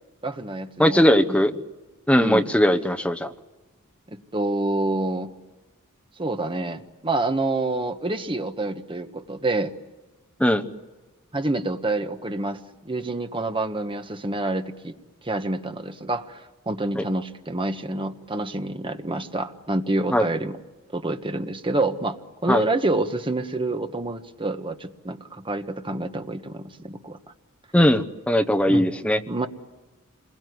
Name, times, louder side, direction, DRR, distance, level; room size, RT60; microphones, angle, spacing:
voice 1, 0.2-1.4 2.2-2.5 4.1-5.3 6.2-9.7 11.3-12.6 12.8-14.9 15.2-20.6 20.9-27.2 28.7-28.9 29.3-29.5, right 2 dB, 25° right, 8 dB, 1.3 m, -27 dB
voice 2, 0.8-1.5 2.1-3.3 10.4-10.6 16.9-17.0 20.1-20.3 22.5-22.6 27.7-29.2, equal, 5° left, 5 dB, 1.0 m, -19 dB
27.5 x 22.0 x 9.6 m, 1.2 s
head